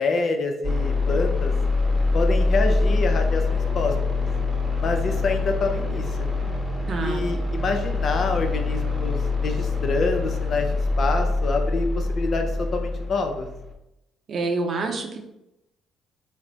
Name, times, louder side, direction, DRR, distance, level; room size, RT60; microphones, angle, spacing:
voice 1, 0.0-1.5 2.1-3.9 4.8-6.3 7.0-10.7 11.0-13.5, left 3 dB, 55° left, 5 dB, 0.5 m, -26 dB
sound 1, 0.6-13.7, left 3 dB, 20° right, 0.8 m, -24 dB
voice 2, 6.9-7.3 14.3-15.2, right 3 dB, 55° right, 3 dB, 0.6 m, -27 dB
3.3 x 2.1 x 3.9 m, 0.87 s
hypercardioid pair, 60°, 0 cm